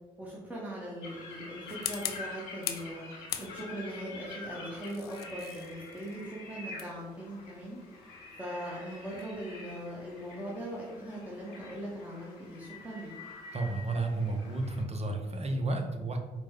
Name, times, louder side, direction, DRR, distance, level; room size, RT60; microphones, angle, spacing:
voice 1, 0.2-3.0 3.4-7.8 8.4-13.1, right 1 dB, 10° right, -5 dB, 1.1 m, -40 dB
sound 1, 1.0-14.8, left 3 dB, 85° left, 0.9 m, -47 dB
sound 2, 1.7-2.9 3.3-3.9 4.6-9.4, left 10 dB, 65° left, 0.4 m, -41 dB
voice 2, 13.5-16.2, right 2 dB, 35° right, 4 dB, 0.8 m, -32 dB
4.9 x 2.2 x 3.6 m, 1.3 s
hypercardioid pair, 45°, 18 cm